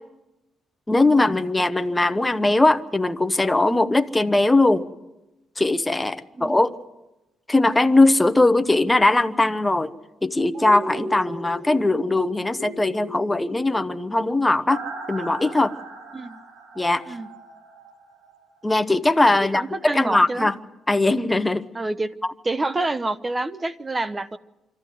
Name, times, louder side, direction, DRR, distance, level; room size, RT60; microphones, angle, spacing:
voice 1, 0.9-4.9 5.6-6.8 7.5-9.9 10.2-14.8 15.1-15.7 16.8-17.2 18.6-20.5 20.9-21.6, left 2 dB, 15° left, 10 dB, 1.0 m, -20 dB
sound 1, 10.5-18.4 18.8-18.9, right 1 dB, 80° right, 3.6 m, -38 dB
voice 2, 19.4-20.5 21.7-22.1 22.4-24.4, right 2 dB, 25° right, 14 dB, 1.0 m, -28 dB
25.5 x 14.0 x 9.4 m, 0.99 s
cardioid pair, 90°, 0 cm